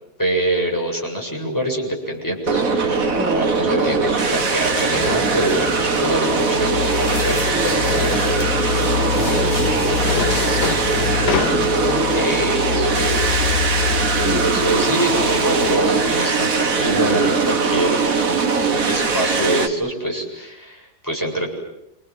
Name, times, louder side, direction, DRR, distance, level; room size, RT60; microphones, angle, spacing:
voice 1, 0.2-8.6 12.1-13.5 14.4-18.0 18.7-21.5, right 1 dB, 10° left, 0 dB, 7.6 m, -25 dB
sound 1, 2.5-19.7, right 4 dB, 55° right, 2.3 m, -20 dB
voice 2, 3.1-3.5 7.5-8.0 9.3-11.1 11.5-12.4 14.2-14.9, equal, 5° right, 1 dB, 2.7 m, -30 dB
sound 2, 4.6-16.1, left 7 dB, 70° left, 2.0 m, -26 dB
28.5 x 27.0 x 7.8 m, 0.86 s
omnidirectional pair, 1.8 m